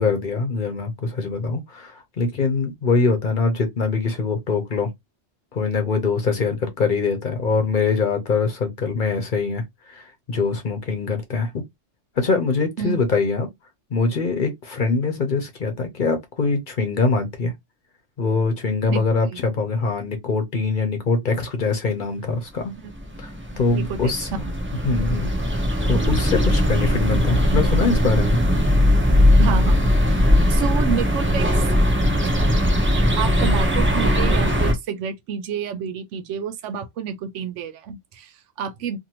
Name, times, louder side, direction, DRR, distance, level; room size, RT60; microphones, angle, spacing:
voice 1, 0.0-4.9 5.5-11.5 12.2-13.5 13.9-17.5 18.2-22.7 23.2-24.3 24.8-25.6 25.9-28.4, left 4 dB, 45° left, 0.8 m, -23 dB
sound 1, 22.9-34.7, left 1 dB, 15° right, 0.4 m, -19 dB
voice 2, 23.7-24.5 29.4-31.7 33.1-39.0, right 7 dB, 80° right, 0.9 m, -29 dB
2.6 x 2.6 x 2.9 m
omnidirectional pair, 1.2 m